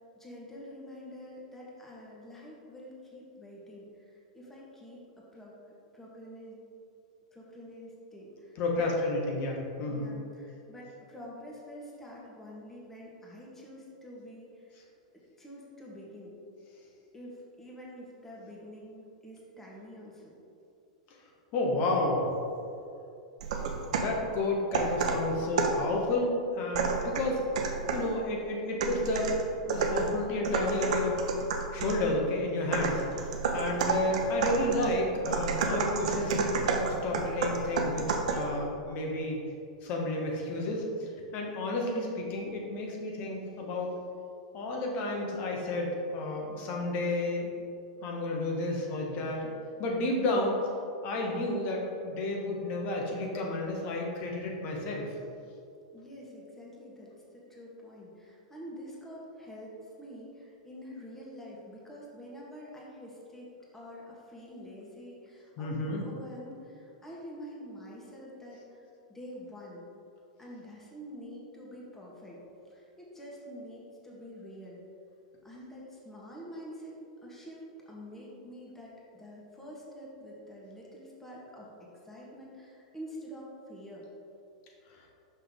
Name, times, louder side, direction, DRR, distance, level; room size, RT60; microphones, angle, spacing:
voice 1, 0.1-5.5 5.9-6.6 7.3-8.9 9.9-14.8 15.4-16.4 17.1-20.4 55.9-59.7 60.0-68.8 69.1-69.8 70.4-72.4 72.7-74.8 75.4-76.9 77.2-84.0, equal, 10° left, -5 dB, 1.5 m, -47 dB
voice 2, 8.6-10.2 21.5-22.3 23.9-27.4 27.9-29.3 29.7-31.2 31.7-33.0 33.5-39.4 39.8-43.9 44.5-47.5 48.0-49.5 49.8-50.5 51.0-55.1 65.6-66.0, left 2 dB, 50° left, -1 dB, 1.4 m, -31 dB
sound 1, 23.4-24.2 24.7-25.9 26.7-28.1 28.8-32.1 32.7-38.5, right 4 dB, 70° right, 0.7 m, -30 dB
5.9 x 5.4 x 3.7 m, 2.6 s
hypercardioid pair, 110°, 4 cm